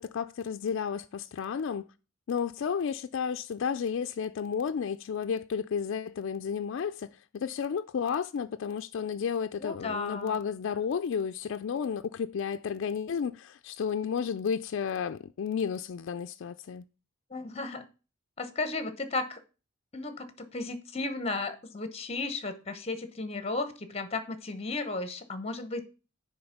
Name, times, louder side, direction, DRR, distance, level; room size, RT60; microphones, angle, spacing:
voice 1, 0.0-1.9 2.3-7.1 7.3-16.9, left 7 dB, 65° left, 0.4 m, -32 dB
voice 2, 9.6-10.4 17.3-17.8 18.4-19.4 19.9-25.8, left 3 dB, 30° left, 1.0 m, -34 dB
9.5 x 3.6 x 5.8 m
head